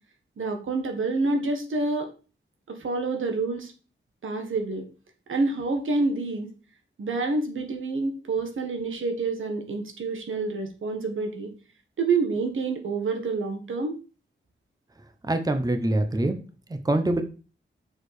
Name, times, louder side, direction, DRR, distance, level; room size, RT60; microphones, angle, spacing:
voice 1, 0.4-2.1 2.7-3.7 4.2-4.9 5.3-6.5 7.0-11.5 12.0-13.9, right 3 dB, 85° right, 5 dB, 1.5 m, -27 dB
voice 2, 15.3-16.4 16.8-17.2, right 1 dB, 20° right, 8 dB, 0.9 m, -24 dB
6.6 x 4.9 x 4.8 m, 0.35 s
wide cardioid pair, 105°, 20 cm